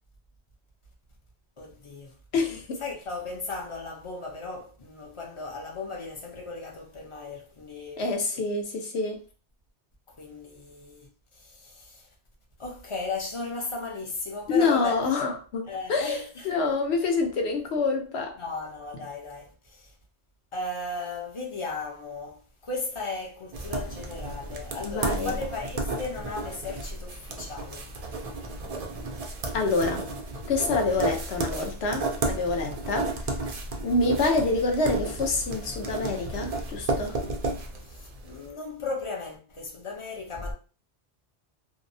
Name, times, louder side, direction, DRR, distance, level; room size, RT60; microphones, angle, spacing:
voice 1, 1.6-2.2 2.8-8.0 10.1-12.1 12.6-15.0 15.7-16.8 18.4-19.9 20.5-27.9 37.8-40.5, left 3 dB, 40° left, 0.5 m, -36 dB
voice 2, 2.3-2.8 8.0-9.2 14.5-18.4 24.8-25.4 29.5-30.0 30.5-33.1 33.8-37.2, left 3 dB, 70° left, 0.9 m, -27 dB
sound 1, 23.5-38.4, right 2 dB, 65° right, 0.3 m, -33 dB
2.7 x 2.0 x 2.6 m
omnidirectional pair, 1.2 m